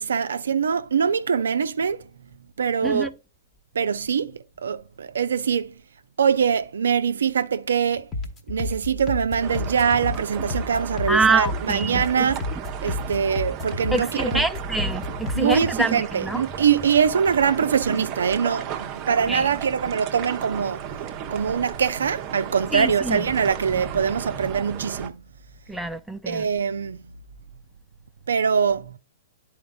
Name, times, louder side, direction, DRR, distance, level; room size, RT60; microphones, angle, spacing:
voice 1, 0.0-2.0 2.6-3.1 3.7-5.7 6.2-8.1 8.5-12.4 12.8-14.5 15.3-20.9 21.3-25.2 26.2-27.1 28.3-29.0, right 7 dB, 70° right, 0.5 m, -23 dB
voice 2, 2.8-3.1 11.1-12.3 13.9-16.4 19.3-19.5 22.7-23.2 25.7-26.5, right 3 dB, ahead, 0.4 m, -25 dB
sound 1, 8.1-15.7, left 2 dB, 20° left, 1.1 m, -31 dB
sound 2, 9.4-25.1, right 8 dB, 30° right, 0.7 m, -34 dB
11.5 x 4.3 x 2.3 m
figure-of-eight pair, 115°, 0 cm